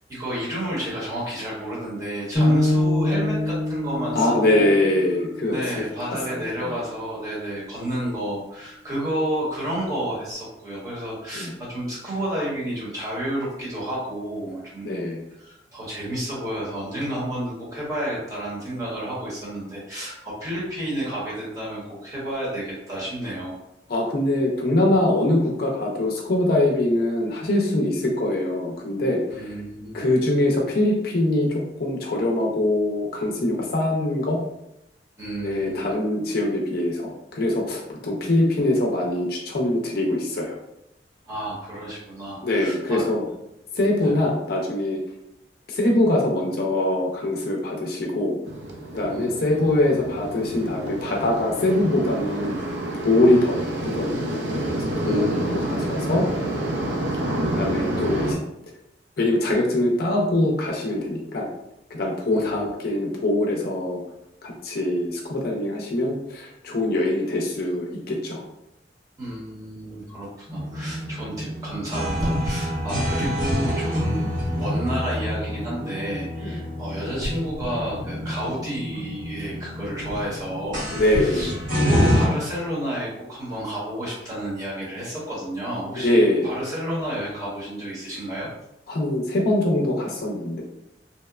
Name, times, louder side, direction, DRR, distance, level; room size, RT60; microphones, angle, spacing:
voice 1, 0.1-4.8 5.5-14.9 15.4-23.5 29.3-30.0 35.2-35.9 41.2-43.0 44.0-44.1 49.1-49.7 55.0-55.7 62.3-62.7 69.2-74.2 74.5-81.5 81.8-88.5, right 1 dB, 20° right, -7 dB, 0.9 m, -31 dB
sound 1, 2.4-6.5, left 1 dB, 25° left, 0.7 m, -25 dB
voice 2, 4.1-6.5 11.3-11.5 14.8-15.2 23.9-29.5 29.9-34.4 35.4-40.6 42.4-43.3 43.7-45.0 45.7-48.4 48.9-52.6 53.0-56.2 57.1-58.4 59.2-61.5 61.9-64.0 64.4-68.4 76.4-76.5 80.9-81.5 86.0-86.5 88.9-90.6, left 1 dB, 55° left, -1 dB, 0.5 m, -23 dB
sound 2, 48.4-58.3, right 1 dB, 70° right, 0.4 m, -29 dB
sound 3, 70.5-82.3, equal, 50° right, 1.0 m, -27 dB
2.8 x 2.1 x 2.3 m, 0.84 s
head